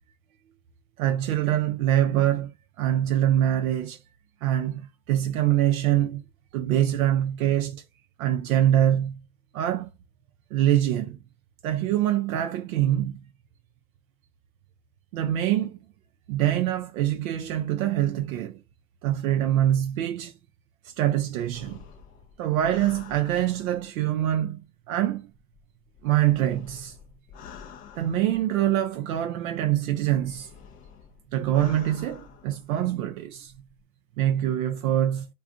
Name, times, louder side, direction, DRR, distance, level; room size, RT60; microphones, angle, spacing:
voice 1, 1.0-2.5 2.8-4.0 4.4-6.2 6.5-7.8 8.2-9.2 9.5-9.9 10.5-11.2 11.6-13.2 15.1-15.8 16.3-18.6 19.0-20.3 20.8-21.8 22.4-24.6 24.9-25.3 26.0-27.0 27.9-30.5 31.3-33.5 34.2-35.3, right 12 dB, 70° right, 0.6 m, -24 dB
sound 1, 21.5-24.0 25.3-28.9 29.8-32.7 33.4-33.8, left 7 dB, 20° left, 0.3 m, -48 dB
2.4 x 2.3 x 3.7 m
hypercardioid pair, 110°, 44 cm